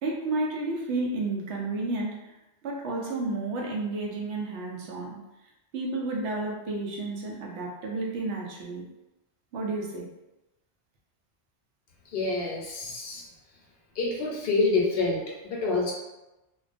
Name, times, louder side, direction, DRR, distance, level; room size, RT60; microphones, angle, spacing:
voice 1, 0.0-2.3 2.6-5.2 5.7-8.8 9.5-10.1, right 2 dB, 80° right, -1 dB, 0.9 m, -31 dB
voice 2, 12.1-13.2 14.0-15.9, left 3 dB, 65° left, -2 dB, 0.7 m, -27 dB
2.4 x 2.2 x 2.4 m, 0.99 s
omnidirectional pair, 1.2 m